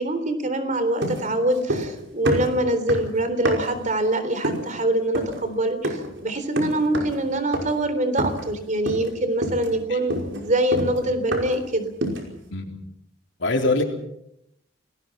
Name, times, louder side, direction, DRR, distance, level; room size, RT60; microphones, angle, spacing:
voice 1, 0.0-11.9, right 1 dB, 40° right, 10 dB, 3.6 m, -24 dB
sound 1, 1.0-2.0 2.2-3.8 4.4-4.7 5.1-5.4 5.8-6.1 6.6-7.2 7.5-7.8 8.2-8.6 8.9-9.1 9.4-11.7 12.0-12.4, right 1 dB, 65° right, 5.5 m, -28 dB
voice 2, 13.4-13.8, left 2 dB, 70° left, 3 dB, 3.9 m, -23 dB
28.5 x 19.5 x 6.1 m, 0.79 s
head